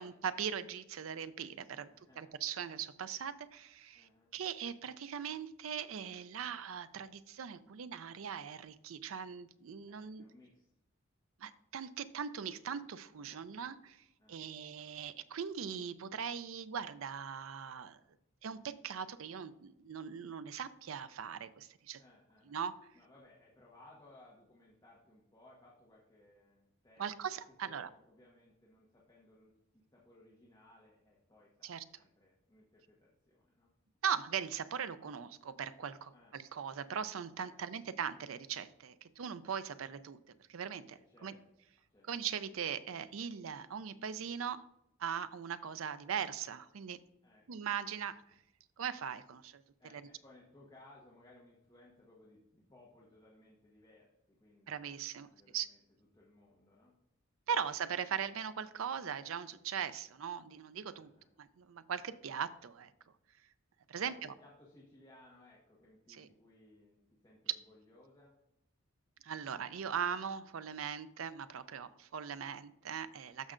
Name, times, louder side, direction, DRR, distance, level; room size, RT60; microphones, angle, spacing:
voice 1, 0.0-1.9 2.2-10.2 11.4-18.0 18.4-22.0 22.5-22.7 27.0-27.9 31.6-31.8 34.0-40.2 40.5-41.3 42.1-44.6 45.0-47.0 47.5-48.2 48.8-49.6 49.9-50.0 54.7-55.7 57.5-61.1 61.4-62.9 63.9-64.3 66.2-66.3 69.2-73.5, right 7 dB, 80° right, 13 dB, 0.5 m, -40 dB
voice 2, 1.9-2.3 3.9-4.3 9.9-10.7 13.2-13.5 14.2-14.5 22.0-22.6 22.9-33.7 36.1-36.3 37.5-37.9 41.1-41.4 41.9-42.1 47.2-47.5 47.8-48.4 49.8-57.0 60.9-61.4 64.0-68.3, left 1 dB, 20° left, -4 dB, 1.3 m, -62 dB
13.5 x 5.4 x 2.5 m, 0.85 s
head